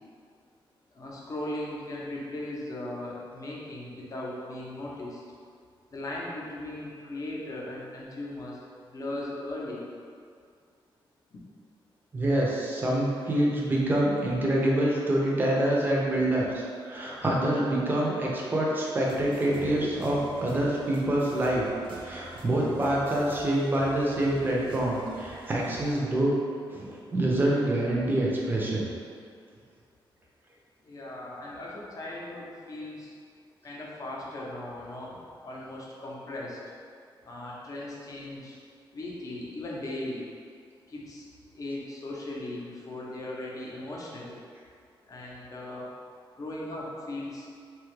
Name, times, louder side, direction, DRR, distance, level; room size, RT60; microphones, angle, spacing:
voice 1, 0.9-5.2 5.9-8.6 8.9-9.8 30.8-33.1 33.6-35.2 35.4-36.6 37.2-38.6 38.9-40.2 40.9-41.2 41.5-44.4 45.1-45.9 46.4-47.5, left 1 dB, 40° left, -4 dB, 0.6 m, -38 dB
voice 2, 12.1-21.7 21.9-26.3 26.7-28.9, right 1 dB, 20° right, -4 dB, 0.5 m, -26 dB
sound 1, 19.0-25.9, right 1 dB, 70° right, 0.6 m, -45 dB
2.9 x 2.3 x 3.1 m, 2.2 s
wide cardioid pair, 130°, 9 cm